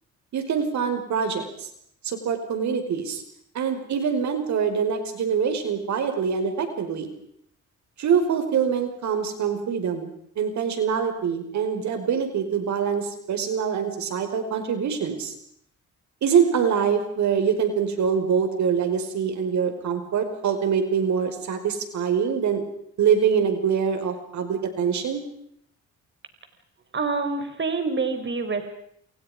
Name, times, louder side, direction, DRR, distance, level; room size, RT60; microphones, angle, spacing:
voice 1, 0.3-1.7 2.0-3.2 3.5-7.1 8.0-10.1 10.4-15.3 16.2-22.6 23.0-25.2, right 7 dB, 70° right, 7 dB, 5.3 m, -24 dB
voice 2, 26.9-28.7, right 4 dB, 40° right, 7 dB, 4.7 m, -26 dB
29.0 x 28.0 x 5.2 m, 0.71 s
cardioid pair, 90°, 30 cm